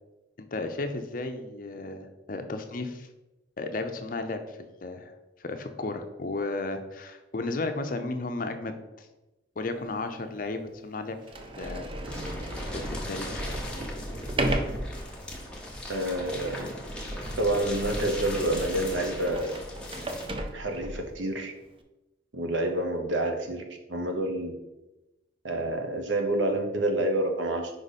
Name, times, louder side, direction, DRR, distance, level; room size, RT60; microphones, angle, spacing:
voice 1, 0.4-3.1 3.6-5.1 5.4-9.1 9.6-11.2 11.6-11.9 12.7-13.5, left 2 dB, 45° left, 7 dB, 0.6 m, -34 dB
Sliding door, 9.8-9.9 10.7-10.8 11.2-21.2, right 1 dB, 30° right, 0.5 m, -35 dB
sound 1, 12.0-20.3, left 1 dB, 5° left, 0.9 m, -40 dB
voice 2, 15.9-16.7 17.4-19.5 20.5-21.5 22.3-23.6 23.9-24.6 25.4-27.7, right 1 dB, 80° right, 4 dB, 0.9 m, -28 dB
5.1 x 5.0 x 4.1 m, 1.0 s
head